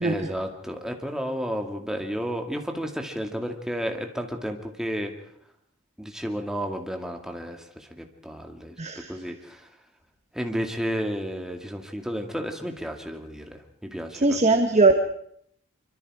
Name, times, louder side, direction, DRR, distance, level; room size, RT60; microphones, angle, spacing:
voice 1, 0.0-5.1 6.0-8.8 9.1-9.7 10.3-13.6 13.9-14.4, equal, 5° right, 3 dB, 2.3 m, -32 dB
voice 2, 8.8-9.1 14.2-15.0, right 3 dB, 35° right, 5 dB, 1.4 m, -20 dB
25.5 x 24.5 x 4.9 m, 0.66 s
head